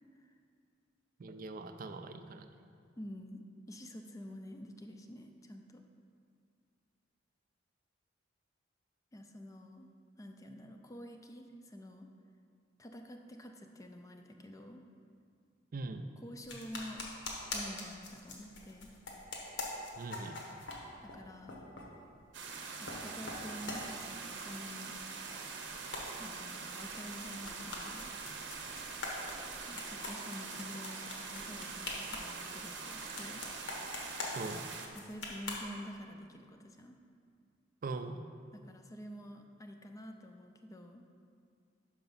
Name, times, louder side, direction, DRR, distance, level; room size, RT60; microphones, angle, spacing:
voice 1, 1.2-2.5 15.7-16.1 20.0-20.4 34.3-34.6 37.8-38.2, right 3 dB, 45° right, 8 dB, 0.4 m, -41 dB
voice 2, 3.0-5.8 9.1-9.9 10.2-12.1 12.8-14.8 16.2-17.1 17.5-18.9 21.0-21.7 22.8-25.0 26.2-28.1 29.7-33.5 34.9-37.0 38.5-41.0, equal, 20° left, 4 dB, 0.4 m, -48 dB
sound 1, 16.4-21.2 21.5-21.9 22.5-23.0 23.3-24.5 24.8-35.6, left 2 dB, 85° left, 1.2 m, -44 dB
sound 2, 22.3-34.9, right 4 dB, 70° right, 0.7 m, -44 dB
5.9 x 5.0 x 5.5 m, 2.2 s
head